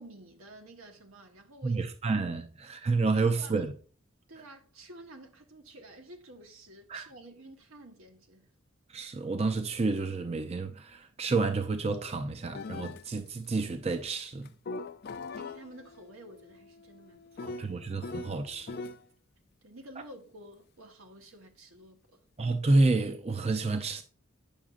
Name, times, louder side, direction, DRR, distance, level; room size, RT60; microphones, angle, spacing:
voice 1, 0.0-2.2 3.3-3.7 4.3-8.5 15.4-17.6 19.6-22.2, right 1 dB, 85° right, 1.3 m, -51 dB
voice 2, 1.6-3.7 6.9-7.1 8.9-14.5 17.4-18.7 22.4-24.0, right 3 dB, 30° right, 0.5 m, -29 dB
sound 1, 12.5-13.1 14.5-19.0, left 3 dB, 50° left, 0.4 m, -42 dB
8.8 x 6.0 x 2.5 m
head